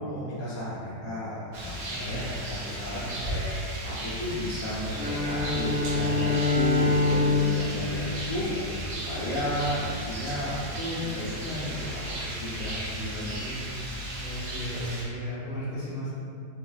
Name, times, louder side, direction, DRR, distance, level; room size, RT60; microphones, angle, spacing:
voice 1, 0.0-3.5 3.8-8.5 9.1-13.7, left 1 dB, 70° left, -10 dB, 1.0 m, -33 dB
Rain, 1.5-15.0, right 1 dB, 75° right, 0.6 m, -35 dB
Bowed string instrument, 4.9-9.1, left 3 dB, 15° right, 0.9 m, -26 dB
voice 2, 14.2-16.1, equal, 40° left, -11 dB, 0.8 m, -34 dB
2.8 x 2.4 x 2.3 m, 2.5 s
omnidirectional pair, 1.7 m